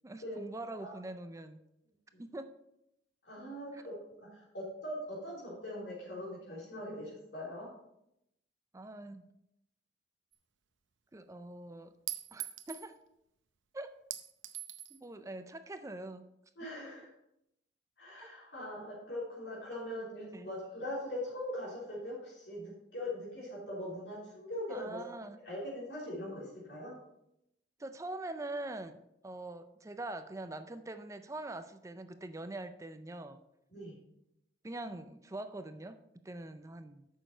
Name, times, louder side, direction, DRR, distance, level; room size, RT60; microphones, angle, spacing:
voice 1, 0.0-1.6 2.2-2.5 3.7-3.8 8.7-9.3 11.1-11.9 12.3-13.0 13.7-13.9 14.9-16.3 18.2-18.3 20.3-20.5 24.7-25.4 27.8-33.4 34.6-37.1, right 2 dB, 15° right, 10 dB, 0.4 m, -43 dB
voice 2, 3.2-7.7 16.6-17.1 18.0-25.0 25.4-26.9 33.7-34.0, left 1 dB, 70° left, -6 dB, 3.4 m, -41 dB
Chink clink, 10.3-10.4 12.1-12.9 14.1-15.0, right 13 dB, 85° right, 0.7 m, -41 dB
9.2 x 6.5 x 4.4 m, 0.83 s
head